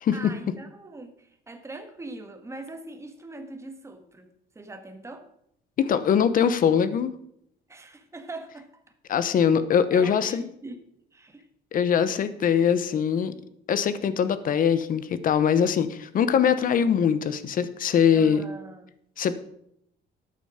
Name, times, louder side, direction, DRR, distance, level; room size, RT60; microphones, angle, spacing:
voice 1, 0.1-4.3 4.5-5.3 7.7-8.8 9.9-10.8 11.1-11.4 12.1-13.0 18.1-18.9, right 2 dB, 15° right, 7 dB, 1.6 m, -42 dB
voice 2, 5.8-7.1 9.1-10.4 11.7-13.3 13.7-18.4 19.2-19.3, left 7 dB, 50° left, 14 dB, 1.1 m, -22 dB
13.0 x 9.1 x 5.1 m, 0.73 s
cardioid pair, 125°, 19 cm